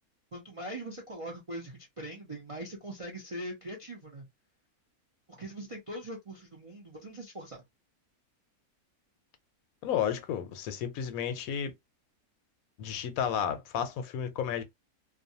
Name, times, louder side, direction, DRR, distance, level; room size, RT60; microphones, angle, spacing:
voice 1, 0.3-4.3 5.4-7.6, right 1 dB, 45° right, 0.4 m, -41 dB
voice 2, 9.8-11.7 12.8-14.6, left 8 dB, 75° left, 1.0 m, -32 dB
2.5 x 2.2 x 2.7 m
omnidirectional pair, 1.6 m